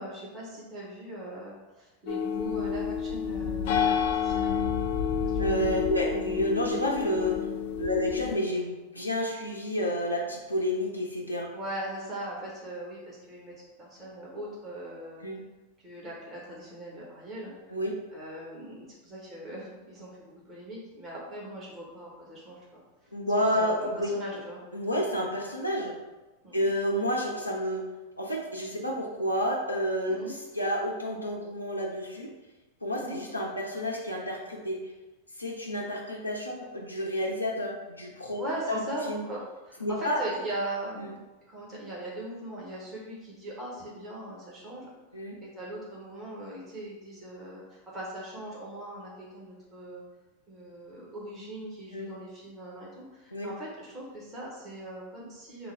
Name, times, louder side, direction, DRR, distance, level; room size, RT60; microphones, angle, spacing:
voice 1, 0.0-4.6 5.5-5.7 11.5-15.2 15.8-17.5 18.1-22.8 23.3-25.0 26.4-26.6 30.0-30.3 33.0-33.2 38.4-44.9 45.4-50.0 50.5-55.7, right 1 dB, 25° right, -5 dB, 1.3 m, -40 dB
sound 1, 2.1-8.4, left 7 dB, 55° left, 0.3 m, -29 dB
voice 2, 5.4-7.4 7.8-11.5 15.2-15.4 17.7-17.9 23.1-24.1 24.7-26.0 26.5-27.8 28.2-32.3 32.8-34.8 35.4-38.4 38.7-38.8 39.1-39.2 39.8-40.2 41.0-41.1 45.1-45.4 51.9-52.1 53.3-53.5, equal, 85° left, -1 dB, 0.7 m, -30 dB
3.8 x 2.2 x 4.5 m, 1.1 s
figure-of-eight pair, 90°, 0 cm